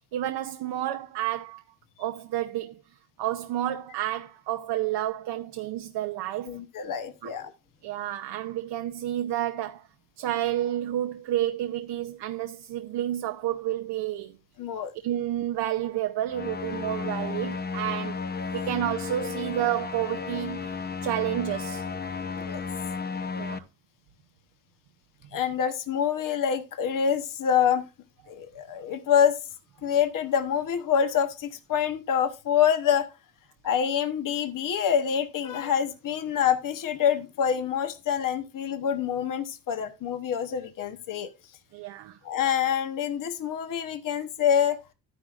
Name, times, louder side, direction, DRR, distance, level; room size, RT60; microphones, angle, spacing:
voice 1, 0.1-1.6 2.0-2.8 3.2-6.6 7.2-7.3 7.8-9.8 10.2-14.4 15.0-18.2 18.5-21.9 23.4-23.7 41.7-42.2, right 12 dB, 80° right, 0.7 m, -30 dB
voice 2, 6.5-7.5 14.6-14.9 22.4-22.6 25.3-27.8 28.3-29.4 29.8-33.1 33.6-41.3 42.2-44.8, left 8 dB, 50° left, 1.0 m, -26 dB
sound 1, 16.3-23.6, left 5 dB, 25° left, 0.7 m, -33 dB
12.0 x 10.0 x 2.5 m
cardioid pair, 115°, 41 cm